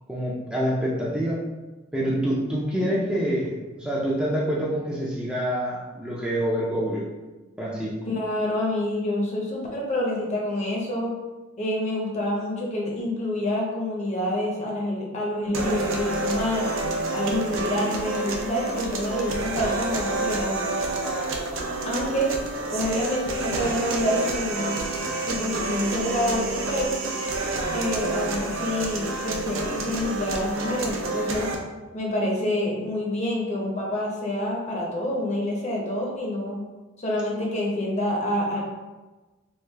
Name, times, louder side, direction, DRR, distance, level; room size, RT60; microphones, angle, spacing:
voice 1, 0.1-1.5 1.9-7.1 7.6-8.0, equal, 5° right, -6 dB, 0.4 m, -26 dB
voice 2, 8.1-11.1 11.6-16.7 17.1-20.7 21.9-22.3 22.7-24.7 25.3-26.9 27.7-31.5 31.9-36.6 37.0-38.6, left 1 dB, 35° left, -2 dB, 0.7 m, -27 dB
sound 1, 15.5-31.5, right 3 dB, 75° right, 0.5 m, -29 dB
3.2 x 2.4 x 3.3 m, 1.2 s
head